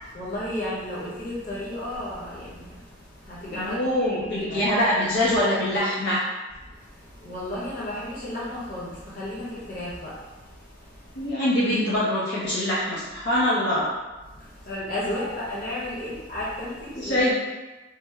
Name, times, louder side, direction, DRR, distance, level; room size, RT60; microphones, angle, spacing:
voice 1, 0.0-4.7 6.6-11.3 14.3-17.3, left 1 dB, 45° left, -7 dB, 1.1 m, -34 dB
voice 2, 3.5-6.2 11.2-13.9 17.0-17.3, left 1 dB, 65° left, -9 dB, 0.7 m, -24 dB
3.4 x 2.1 x 3.4 m, 1.1 s
head